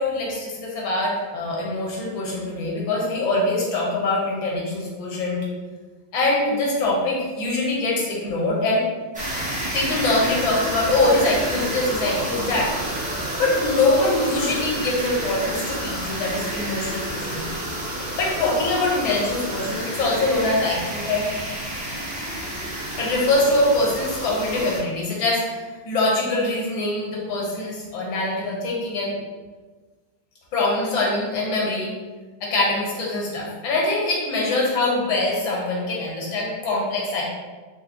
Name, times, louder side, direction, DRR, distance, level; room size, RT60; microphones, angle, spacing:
voice 1, 0.0-5.5 6.1-8.8 9.7-12.7 13.4-17.4 18.2-21.3 23.0-29.2 30.5-31.9 32.4-37.2, left 2 dB, 85° left, -3 dB, 1.8 m, -23 dB
sound 1, 9.1-24.8, right 1 dB, 5° right, 0.6 m, -30 dB
4.8 x 2.1 x 3.6 m, 1.3 s
omnidirectional pair, 2.1 m